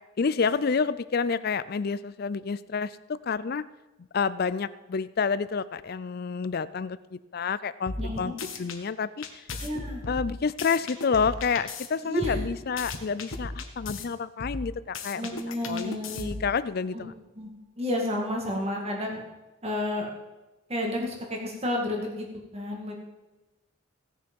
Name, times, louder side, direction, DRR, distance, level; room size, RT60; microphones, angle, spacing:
voice 1, 0.2-3.6 4.1-8.3 8.6-9.4 10.1-17.1, left 5 dB, 45° left, 16 dB, 0.4 m, -29 dB
sound 1, 7.9-8.8 9.2-11.9 12.2-14.0 14.4-16.5, left 3 dB, 70° left, 1.2 m, -36 dB
voice 2, 8.0-8.4 9.5-10.0 12.0-12.5 15.2-16.4 16.9-17.1 17.3-17.5 17.8-19.2 19.6-20.1 20.7-22.3 22.5-22.9, left 1 dB, 30° right, 0 dB, 2.1 m, -31 dB
17.0 x 6.6 x 5.4 m, 1.1 s
head